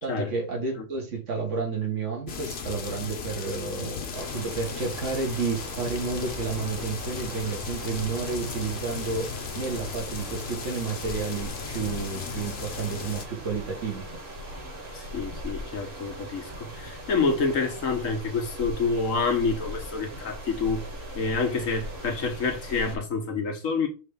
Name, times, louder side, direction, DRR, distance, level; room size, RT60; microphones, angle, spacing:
voice 1, 0.0-14.0, right 4 dB, 70° right, 2.1 m, -31 dB
sound 1, 2.3-13.3, left 6 dB, 55° left, 1.1 m, -36 dB
sound 2, 4.1-23.0, equal, 45° right, 2.0 m, -40 dB
voice 2, 14.9-20.8 21.1-23.9, left 4 dB, 90° left, 1.6 m, -28 dB
5.2 x 3.4 x 5.4 m
omnidirectional pair, 1.3 m